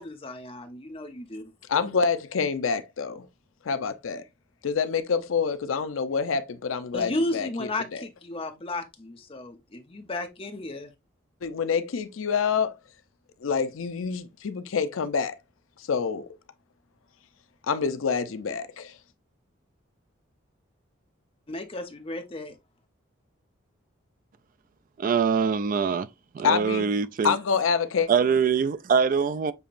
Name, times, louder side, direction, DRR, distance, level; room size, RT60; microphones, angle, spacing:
voice 1, 0.0-1.5 6.9-10.9 21.5-22.6, left 2 dB, 30° left, 0.7 m, -34 dB
voice 2, 1.7-3.3 3.6-4.2 4.6-8.0 11.4-12.8 13.4-15.4 15.9-16.3 17.7-18.9 26.4-26.8 27.2-28.1, left 6 dB, 85° left, 0.5 m, -27 dB
voice 3, 25.0-26.1 26.3-27.4 28.1-29.5, right 6 dB, 40° right, 0.3 m, -23 dB
6.9 x 2.9 x 2.5 m
head